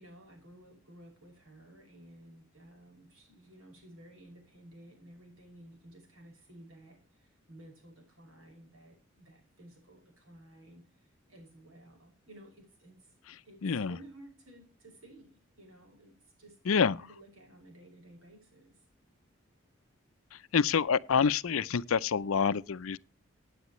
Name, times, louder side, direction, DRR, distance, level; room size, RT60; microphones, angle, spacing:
voice 1, 0.0-13.1 13.4-16.6 16.9-18.8, right 1 dB, 90° right, 6.0 m, -55 dB
voice 2, 13.6-14.0 16.7-17.0 20.5-23.0, left 6 dB, 85° left, 0.5 m, -27 dB
16.0 x 9.3 x 3.1 m
head